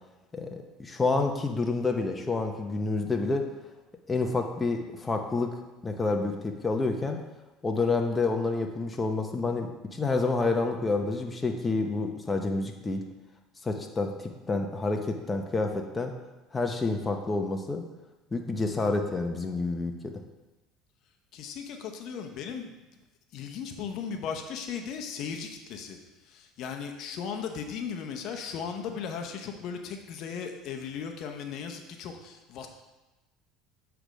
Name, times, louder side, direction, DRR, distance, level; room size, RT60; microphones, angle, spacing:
voice 1, 0.3-3.5 4.1-5.5 5.8-7.2 7.6-13.0 13.6-16.2 16.5-17.8 18.3-20.1, left 3 dB, 20° left, 3 dB, 0.7 m, -28 dB
voice 2, 21.3-22.7 23.3-26.0 26.3-32.7, left 6 dB, 60° left, 4 dB, 0.7 m, -37 dB
8.0 x 3.4 x 5.1 m, 1.1 s
supercardioid pair, 105°, 0 cm